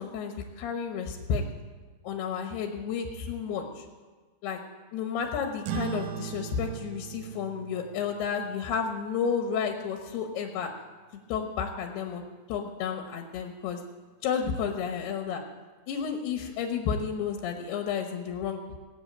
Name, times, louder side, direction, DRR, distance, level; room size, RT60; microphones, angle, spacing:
voice 1, 0.0-1.4 2.0-3.9 4.4-4.6 4.9-10.7 11.3-12.2 12.5-13.8 14.2-15.4 15.9-18.6, left 6 dB, 90° left, 4 dB, 3.2 m, -31 dB
sound 1, 5.6-10.5, right 11 dB, 85° right, 1.7 m, -40 dB
18.0 x 7.2 x 8.7 m, 1.4 s
omnidirectional pair, 4.5 m